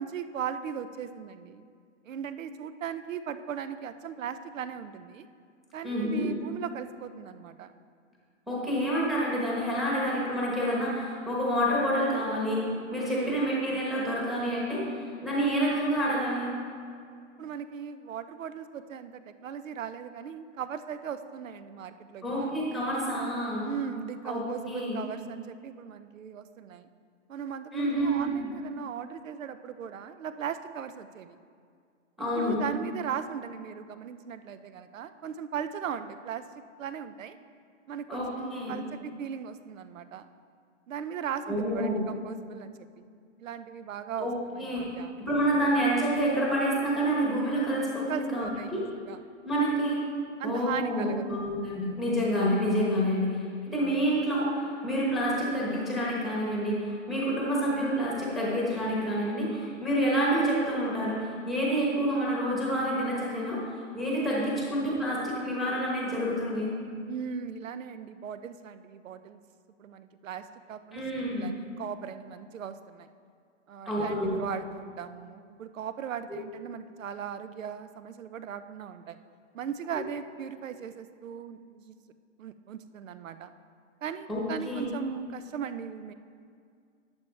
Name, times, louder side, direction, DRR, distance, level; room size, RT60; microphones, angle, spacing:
voice 1, 0.0-1.6 2.0-5.3 5.7-7.7 13.1-13.4 17.4-22.6 23.6-26.9 27.3-31.4 32.3-36.4 36.8-37.4 37.9-40.3 40.9-43.0 43.4-45.2 48.1-49.2 50.4-51.4 67.1-69.4 69.8-73.1 73.7-79.2 79.5-82.0 82.4-83.5 84.0-86.1, right 8 dB, 90° right, 11 dB, 0.7 m, -38 dB
voice 2, 5.8-6.3 8.5-12.6 12.9-16.5 22.2-23.7 24.2-25.0 27.7-28.4 32.2-32.6 38.1-38.7 41.5-42.0 44.2-44.8 45.2-48.8 49.4-50.0 50.4-66.7 70.9-71.5 73.9-74.4 76.3-76.4 79.9-80.0 84.3-84.9, equal, ahead, -5 dB, 1.0 m, -28 dB
11.5 x 8.7 x 3.3 m, 2.2 s
hypercardioid pair, 170°, 38 cm